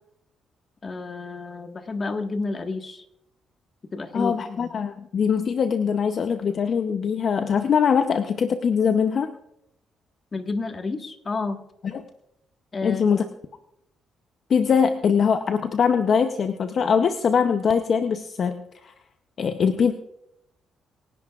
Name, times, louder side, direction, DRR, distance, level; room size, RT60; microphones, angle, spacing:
voice 1, 0.8-3.0 3.9-4.7 10.3-11.6 12.7-13.3, left 3 dB, 35° left, 5 dB, 1.5 m, -30 dB
voice 2, 4.1-9.3 11.8-12.0 12.8-13.2 14.5-18.9 19.4-19.9, left 6 dB, 55° left, 8 dB, 0.7 m, -22 dB
26.0 x 11.0 x 2.4 m, 0.80 s
cardioid pair, 90°, 0 cm